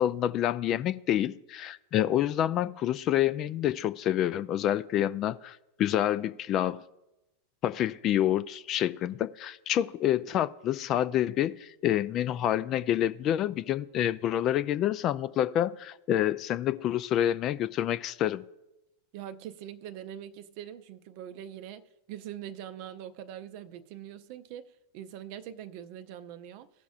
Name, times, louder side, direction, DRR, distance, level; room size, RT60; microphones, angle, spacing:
voice 1, 0.0-6.8 7.6-18.4, left 11 dB, 35° left, 0.3 m, -28 dB
voice 2, 19.1-21.8 22.1-26.7, right 10 dB, 45° right, 0.5 m, -43 dB
17.0 x 5.9 x 2.4 m
figure-of-eight pair, 90°, 0 cm